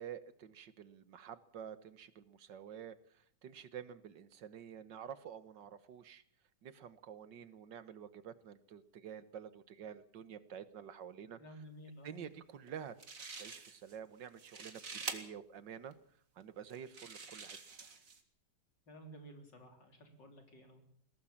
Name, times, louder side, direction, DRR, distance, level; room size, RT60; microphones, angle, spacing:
voice 1, 0.0-6.2 6.6-11.6 12.0-13.0 13.4-15.9 16.4-17.6, right 8 dB, 75° right, 14 dB, 1.9 m, -49 dB
voice 2, 11.4-12.2 18.9-20.8, right 1 dB, 75° left, 4 dB, 4.8 m, -53 dB
sound 1, 12.7-12.8 13.0-14.0 14.3-15.2 15.9-16.0 16.7-18.2, right 4 dB, 50° right, 2.4 m, -46 dB
22.0 x 17.5 x 7.3 m, 0.63 s
omnidirectional pair, 1.9 m